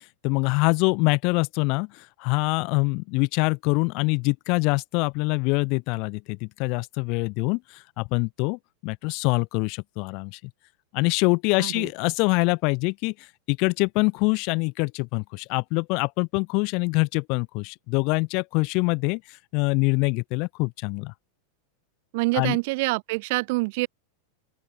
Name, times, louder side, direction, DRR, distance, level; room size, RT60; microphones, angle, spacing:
voice 1, 0.2-10.4 10.9-21.1 22.3-22.6, left 30 dB, 45° left, 4.4 m, -25 dB
voice 2, 11.6-11.9 22.1-23.9, right 25 dB, 50° right, 2.7 m, -26 dB
open air
figure-of-eight pair, 90°, 0 cm